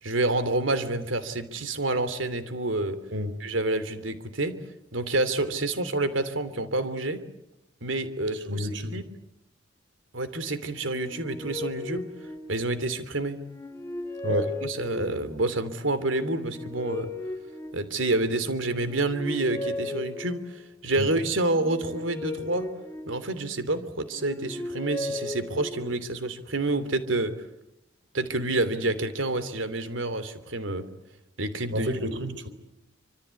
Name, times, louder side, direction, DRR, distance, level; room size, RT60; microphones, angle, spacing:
voice 1, 0.0-3.0 3.4-4.5 4.9-7.2 7.8-9.1 10.1-12.0 12.5-13.4 14.3-17.1 17.7-22.7 23.1-27.3 28.1-30.8 31.4-31.9, right 2 dB, 80° right, 3.1 m, -28 dB
voice 2, 8.5-8.9 14.2-14.5 21.0-21.1 31.7-32.5, equal, 65° right, 3.8 m, -29 dB
sound 1, 10.8-12.9 13.4-15.4 16.1-18.3 18.7-20.8 21.5-23.6 24.1-26.1, left 2 dB, 15° left, 2.8 m, -37 dB
27.0 x 26.0 x 8.4 m
head